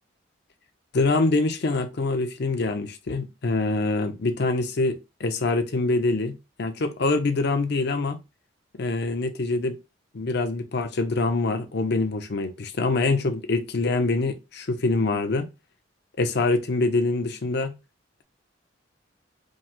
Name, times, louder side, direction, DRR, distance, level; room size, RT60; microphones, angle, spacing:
voice 1, 0.9-8.2 8.7-9.8 10.1-15.5 16.2-17.8, left 3 dB, 60° left, 0.6 m, -25 dB
5.2 x 2.0 x 3.6 m
head